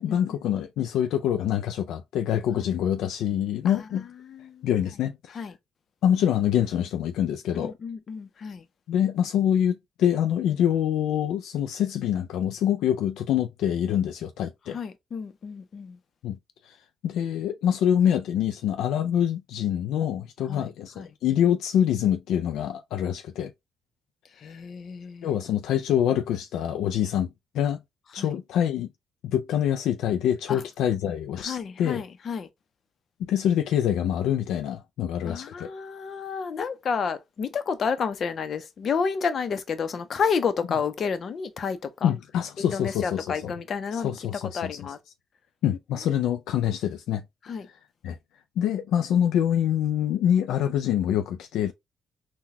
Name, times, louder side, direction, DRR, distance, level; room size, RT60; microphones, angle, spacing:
voice 1, 0.0-4.1 4.6-5.4 6.0-7.7 8.9-14.8 16.2-16.4 16.7-16.8 17.0-23.5 24.4-24.6 25.2-27.3 27.5-27.8 28.1-28.9 29.2-32.0 33.2-35.7 42.0-43.5 43.9-44.8 45.6-47.2 48.0-48.2 48.6-51.7, left 10 dB, 85° left, 0.3 m, -25 dB
voice 2, 3.6-4.7 5.3-5.5 7.5-8.7 14.7-16.0 20.4-21.1 24.4-25.4 28.2-28.3 30.5-30.6 31.4-32.5 35.2-42.1 42.6-45.0 45.6-45.8 47.4-47.7, left 6 dB, 55° left, 0.6 m, -31 dB
3.9 x 2.2 x 2.7 m
cardioid pair, 90°, 0 cm